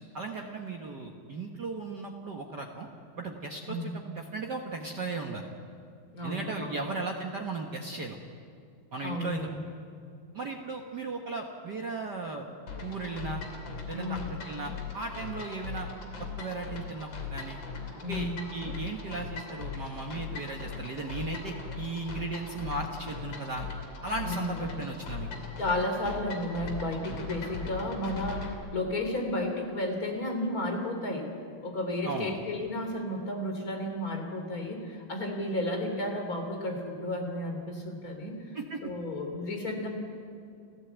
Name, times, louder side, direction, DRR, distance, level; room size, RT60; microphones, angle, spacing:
voice 1, 0.0-2.9 3.2-5.5 6.2-8.2 8.9-9.5 10.3-12.5 12.8-13.4 13.9-15.9 16.2-17.6 18.1-23.7 24.0-25.3 32.0-32.4 38.5-38.8, right 3 dB, 70° right, 1 dB, 0.9 m, -36 dB
voice 2, 3.7-4.0 6.1-6.9 9.0-9.7 13.9-14.2 18.0-18.4 24.2-24.6 25.6-31.3 31.6-38.6 38.8-39.9, left 1 dB, 25° left, 3 dB, 3.3 m, -33 dB
sound 1, 12.7-28.5, left 5 dB, 45° left, 3.7 m, -40 dB
30.0 x 15.0 x 8.1 m, 2.3 s
omnidirectional pair, 4.1 m